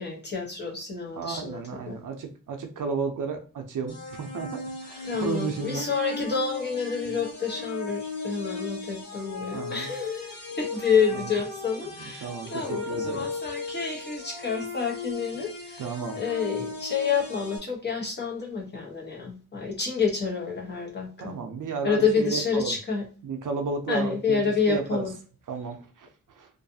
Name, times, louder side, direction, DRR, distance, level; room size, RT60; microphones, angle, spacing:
voice 1, 0.0-2.0 5.1-15.9 16.2-21.3 21.8-23.0 23.9-25.1, left 5 dB, 30° left, -1 dB, 0.9 m, -28 dB
voice 2, 1.1-5.9 9.5-9.9 11.1-11.3 11.9-13.3 15.8-16.2 21.2-22.8 23.2-24.4 24.7-25.1 25.5-26.5, right 5 dB, 70° right, 4 dB, 0.5 m, -33 dB
sound 1, 3.9-17.6, left 3 dB, 80° left, 1.2 m, -37 dB
2.6 x 2.3 x 2.6 m, 0.38 s
wide cardioid pair, 130°, 33 cm